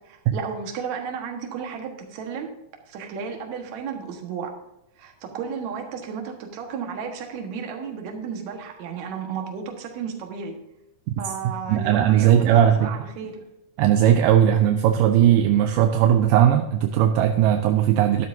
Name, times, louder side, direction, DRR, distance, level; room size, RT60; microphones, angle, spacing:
voice 1, 0.1-2.5 2.9-4.5 5.0-10.6 11.2-13.4, right 6 dB, 60° right, 3 dB, 2.4 m, -33 dB
voice 2, 11.1-12.9 13.8-18.3, right 10 dB, 80° right, 6 dB, 2.1 m, -18 dB
12.5 x 12.0 x 2.7 m, 0.87 s
omnidirectional pair, 4.3 m